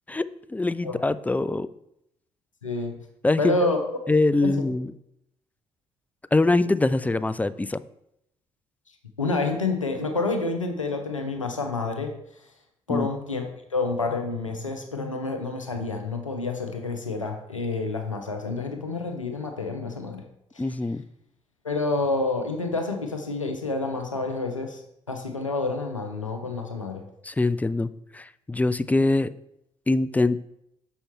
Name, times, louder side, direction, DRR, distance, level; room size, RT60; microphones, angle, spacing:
voice 1, 0.1-1.7 3.2-3.6 4.1-4.9 6.3-7.8 12.9-13.1 20.6-21.0 27.2-29.3 29.9-30.4, left 2 dB, 10° left, 15 dB, 0.4 m, -23 dB
voice 2, 2.6-3.0 3.4-3.8 4.4-4.6 9.2-12.2 12.9-13.4 13.7-20.2 20.5-20.6 21.6-24.8 25.1-27.0, left 3 dB, 90° left, 5 dB, 0.7 m, -28 dB
6.6 x 5.6 x 4.4 m, 0.79 s
figure-of-eight pair, 45°, 16 cm